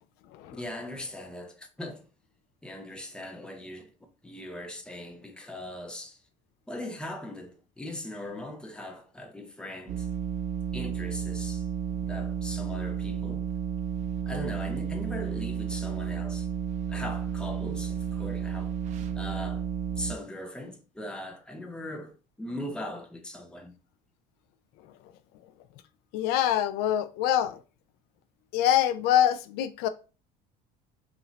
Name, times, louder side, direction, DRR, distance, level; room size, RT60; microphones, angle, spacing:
voice 1, 0.5-2.0 2.6-3.9 4.2-6.2 6.7-10.1 10.7-11.7 12.0-13.5 14.3-16.5 16.9-18.7 19.1-19.7 20.0-23.7, left 1 dB, 5° left, 0.7 m, -39 dB
sound 1, 9.9-20.1, right 8 dB, 45° right, 0.6 m, -32 dB
voice 2, 26.1-27.6 28.5-29.9, left 11 dB, 70° left, 0.4 m, -25 dB
5.6 x 2.6 x 3.1 m
cardioid pair, 135°, 17 cm